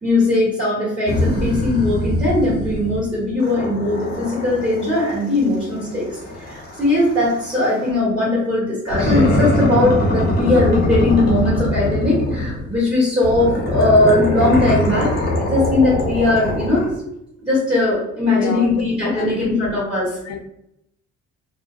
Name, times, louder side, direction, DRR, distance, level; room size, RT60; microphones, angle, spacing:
voice 1, 0.0-6.1 6.4-16.9 17.4-20.1, left 2 dB, 20° right, -9 dB, 1.3 m, -19 dB
sound 1, 1.1-3.0 3.4-7.9 8.9-12.8 13.2-17.0, left 1 dB, 30° left, 0.9 m, -22 dB
voice 2, 18.2-18.7 19.2-19.5 20.2-20.4, left 5 dB, 60° left, 6 dB, 0.4 m, -29 dB
2.4 x 2.2 x 2.3 m, 0.79 s
cardioid pair, 90°, 30 cm